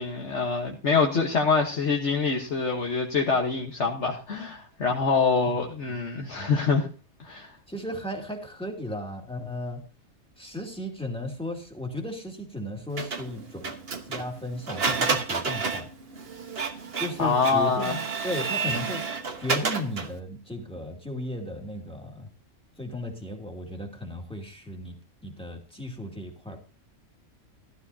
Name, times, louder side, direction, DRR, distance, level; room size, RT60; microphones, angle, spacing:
voice 1, 0.0-6.9 7.2-7.5 17.2-18.0, left 4 dB, 55° left, 1 dB, 1.5 m, -25 dB
voice 2, 7.7-9.8 10.4-13.7 14.0-15.9 17.0-18.0 18.2-19.0 19.4-22.3 22.8-24.9 25.2-26.6, left 1 dB, 5° left, 1 dB, 2.4 m, -35 dB
Printer, 13.0-20.2, right 4 dB, 45° right, 1.4 m, -30 dB
16.0 x 12.5 x 2.8 m, 0.34 s
omnidirectional pair, 1.4 m